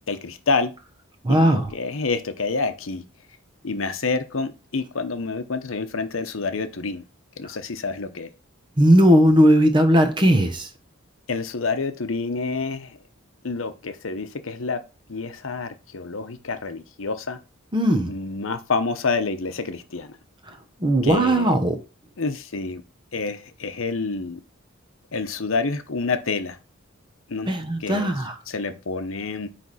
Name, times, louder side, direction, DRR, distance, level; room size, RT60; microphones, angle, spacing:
voice 1, 0.1-0.7 1.3-3.0 3.6-7.0 7.4-8.3 11.3-13.0 13.4-14.8 15.1-17.4 18.1-20.2 21.0-21.5 22.2-22.8 23.1-24.4 25.1-26.6 27.3-27.5 27.8-28.1 28.5-29.5, left 4 dB, 75° left, 0.8 m, -28 dB
voice 2, 1.2-1.7 8.8-10.7 17.7-18.1 20.8-21.8 27.5-28.4, equal, 25° right, 1.0 m, -18 dB
9.4 x 3.4 x 4.1 m
head